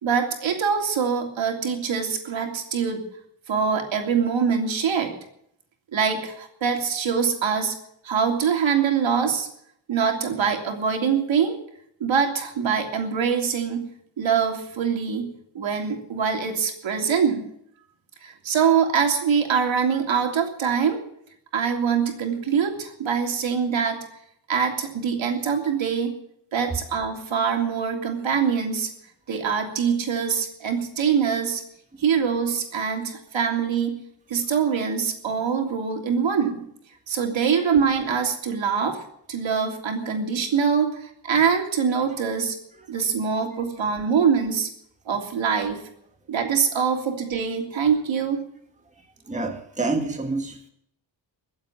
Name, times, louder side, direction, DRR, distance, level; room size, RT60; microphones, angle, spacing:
voice 1, 0.0-3.0 3.5-5.1 5.9-7.7 8.0-9.5 9.9-11.6 12.0-13.9 14.2-15.3 15.5-17.4 18.2-21.0 21.5-24.0 24.5-26.1 26.5-28.9 29.3-31.6 32.0-34.0 34.3-36.6 37.1-39.0 39.3-42.6 42.9-44.7 45.1-45.8 46.3-48.4, right 6 dB, 80° right, 3 dB, 3.2 m, -24 dB
voice 2, 49.0-50.6, right 3 dB, 15° right, 3 dB, 1.7 m, -29 dB
22.0 x 8.0 x 7.5 m, 0.70 s
wide cardioid pair, 150°, 45 cm